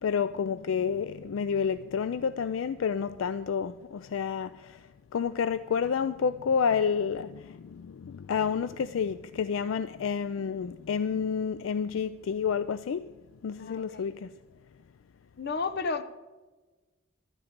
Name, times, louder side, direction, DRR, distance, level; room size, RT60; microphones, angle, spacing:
voice 1, 0.0-4.8 5.1-13.0 13.4-14.3, left 6 dB, 75° left, 0.3 m, -29 dB
voice 2, 13.6-14.1 15.4-16.0, left 4 dB, 50° left, 0.8 m, -32 dB
12.5 x 9.9 x 5.1 m
head